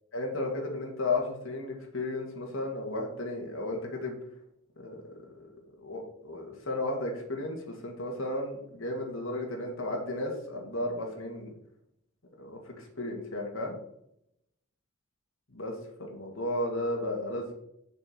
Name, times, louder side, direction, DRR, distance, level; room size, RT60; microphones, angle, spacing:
voice 1, 0.1-4.2 4.8-5.4 5.8-11.5 12.4-13.8 15.5-15.7 16.0-17.5, left 2 dB, 80° left, 0 dB, 1.9 m, -34 dB
6.7 x 4.6 x 5.8 m, 0.77 s
head